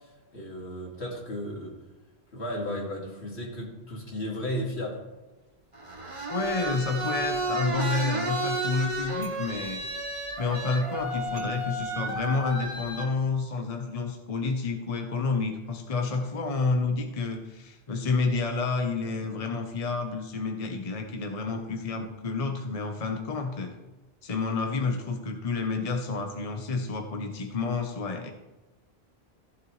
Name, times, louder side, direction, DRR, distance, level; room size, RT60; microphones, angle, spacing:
voice 1, 0.3-1.7 2.3-5.0, equal, 80° left, -2 dB, 2.8 m, -34 dB
sound 1, 5.7-13.1, right 2 dB, 30° right, 1.3 m, -32 dB
voice 2, 6.3-9.8 10.4-23.7 24.2-28.3, left 4 dB, 35° left, 4 dB, 1.0 m, -29 dB
15.0 x 7.9 x 3.2 m, 1.1 s
omnidirectional pair, 1.1 m